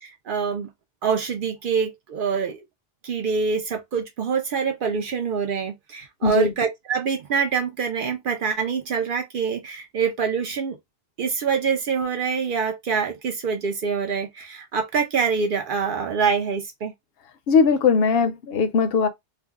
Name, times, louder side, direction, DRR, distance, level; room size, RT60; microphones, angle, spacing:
voice 1, 0.0-0.7 1.0-2.6 3.0-10.8 11.2-16.9, right 6 dB, 65° right, 0.7 m, -25 dB
voice 2, 6.2-6.5 17.5-19.1, left 5 dB, 75° left, 0.8 m, -19 dB
2.5 x 2.1 x 3.4 m
omnidirectional pair, 1.0 m